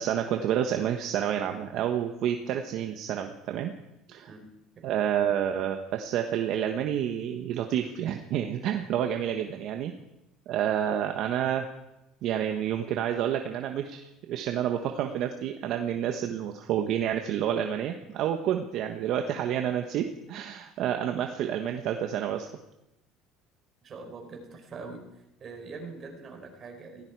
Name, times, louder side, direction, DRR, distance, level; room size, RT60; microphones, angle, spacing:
voice 1, 0.0-3.7 4.1-4.3 4.8-9.9 10.5-11.7 12.2-22.5, right 10 dB, 60° right, 5 dB, 1.3 m, -29 dB
voice 2, 23.8-27.0, right 4 dB, 40° right, 3 dB, 4.6 m, -43 dB
17.5 x 16.5 x 4.8 m, 0.89 s
supercardioid pair, 110°, 0 cm